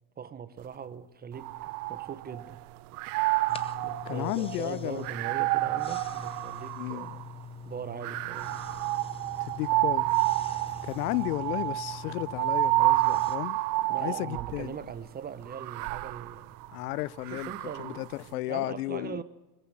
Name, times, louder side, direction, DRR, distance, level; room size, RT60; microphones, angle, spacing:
voice 1, 0.2-1.5 1.9-2.6 3.8-7.1 7.7-8.5 13.9-16.6 17.3-19.2, right 7 dB, 20° right, 1.0 m, -40 dB
sound 1, 1.4-2.5 2.9-7.3 8.0-14.7 15.5-18.1, right 19 dB, 45° right, 0.7 m, -30 dB
sound 2, 3.5-13.4, left 4 dB, 10° left, 0.7 m, -44 dB
voice 2, 4.0-5.1 6.8-7.1 9.4-10.1 10.8-14.8 16.7-17.5 17.8-19.2, left 19 dB, 70° left, 0.6 m, -33 dB
sound 3, 8.2-13.3, right 3 dB, 70° right, 3.5 m, -54 dB
21.0 x 14.5 x 8.5 m
hypercardioid pair, 115°, 48 cm